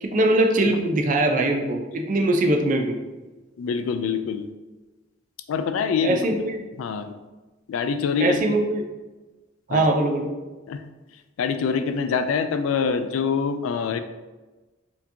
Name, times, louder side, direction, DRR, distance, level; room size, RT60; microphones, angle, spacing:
voice 1, 0.0-3.0 6.0-6.6 8.2-8.9 9.7-10.3, right 2 dB, 40° right, 3 dB, 0.4 m, -21 dB
voice 2, 3.6-4.5 5.5-6.4 6.8-7.1 7.7-8.5 9.7-9.8 10.7-10.8 11.4-14.0, left 6 dB, 85° left, 9 dB, 0.3 m, -25 dB
4.3 x 2.8 x 2.7 m, 1.2 s
head